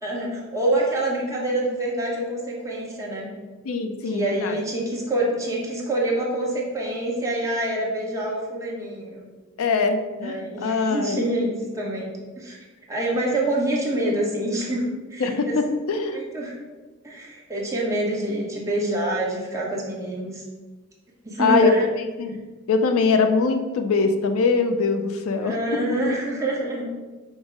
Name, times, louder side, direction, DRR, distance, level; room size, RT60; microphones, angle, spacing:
voice 1, 0.0-3.3 4.0-9.3 10.2-12.6 12.9-15.5 16.1-16.6 17.0-20.4 21.2-21.9 25.4-26.9, right 1 dB, 15° right, -4 dB, 0.9 m, -26 dB
voice 2, 3.6-4.6 9.6-11.2 15.2-16.2 21.4-21.7 22.2-22.4 22.7-25.5, left 4 dB, 80° left, 6 dB, 0.5 m, -22 dB
5.3 x 2.0 x 4.8 m, 1.2 s
head